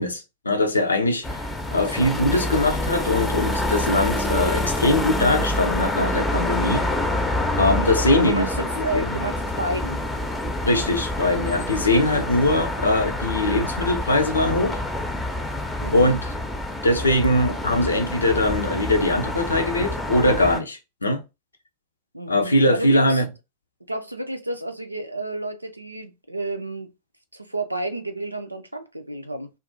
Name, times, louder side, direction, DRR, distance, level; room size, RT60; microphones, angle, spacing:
voice 1, 0.0-1.4 1.7-6.9 7.6-8.5 8.8-9.2 10.6-14.8 15.9-16.2 16.8-21.2 22.3-23.3, left 1 dB, 75° left, 0.6 m, -21 dB
sound 1, 1.2-20.6, left 1 dB, 10° left, 0.6 m, -27 dB
voice 2, 7.6-10.0 11.5-11.8 15.8-16.2 22.1-23.2 23.9-26.9 27.3-29.5, right 2 dB, 85° right, 0.5 m, -31 dB
2.6 x 2.4 x 3.7 m
figure-of-eight pair, 90°, 0 cm